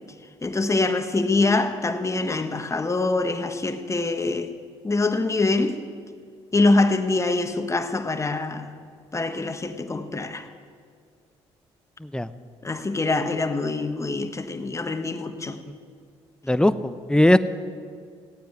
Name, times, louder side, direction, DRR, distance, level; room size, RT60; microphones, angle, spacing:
voice 1, 0.4-4.5 4.8-5.8 6.5-8.7 9.1-10.5 12.6-15.6, left 3 dB, 25° left, 1.4 m, -24 dB
voice 2, 12.0-12.3 16.5-17.4, left 1 dB, 5° left, 0.8 m, -19 dB
17.0 x 9.2 x 9.2 m
supercardioid pair, 65°, 12 cm